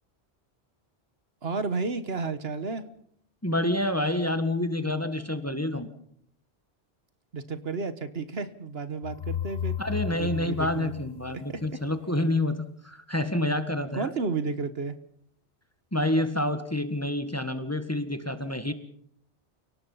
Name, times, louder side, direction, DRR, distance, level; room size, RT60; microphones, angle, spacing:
voice 1, 1.4-2.8 7.3-9.7 10.1-10.9 11.5-11.6 13.9-15.0, right 4 dB, 65° right, 12 dB, 1.5 m, -32 dB
voice 2, 3.4-5.9 9.8-14.1 15.9-18.7, left 1 dB, 15° left, 9 dB, 1.6 m, -28 dB
sound 1, 9.0-11.9, left 9 dB, 45° left, 1.2 m, -34 dB
29.5 x 18.0 x 5.6 m, 0.66 s
omnidirectional pair, 1.1 m